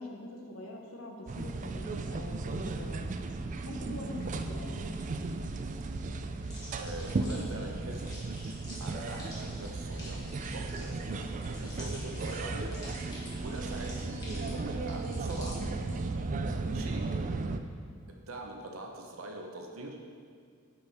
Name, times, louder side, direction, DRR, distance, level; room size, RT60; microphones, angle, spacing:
voice 1, 0.0-3.1 3.6-5.0 16.7-17.0, left 1 dB, 85° left, 1 dB, 1.1 m, -44 dB
sound 1, 1.3-17.6, right 3 dB, 35° right, 0.3 m, -35 dB
sound 2, 6.4-16.3, left 1 dB, 20° left, 2.0 m, -49 dB
voice 2, 6.8-8.1 8.8-10.2 10.5-12.8 13.4-15.6 16.7-17.2 18.1-20.0, right 2 dB, 75° right, 2 dB, 0.8 m, -42 dB
8.0 x 5.3 x 4.2 m, 2.2 s
head